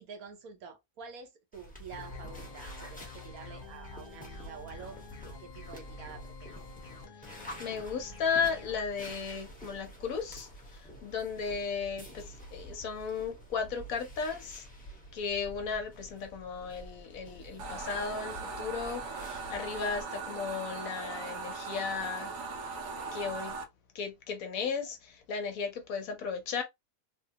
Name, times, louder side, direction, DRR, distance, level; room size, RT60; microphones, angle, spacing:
voice 1, 0.0-6.6, right 6 dB, 70° right, 1.1 m, -48 dB
sound 1, 1.5-20.0, right 1 dB, 5° left, 0.7 m, -48 dB
sound 2, 1.9-8.8, left 6 dB, 40° left, 1.0 m, -49 dB
voice 2, 7.2-14.7 15.1-22.4 23.1-23.6 23.9-26.6, left 5 dB, 65° left, 1.0 m, -35 dB
sound 3, 17.6-23.6, right 4 dB, 85° right, 1.3 m, -39 dB
3.2 x 2.1 x 2.8 m
omnidirectional pair, 1.7 m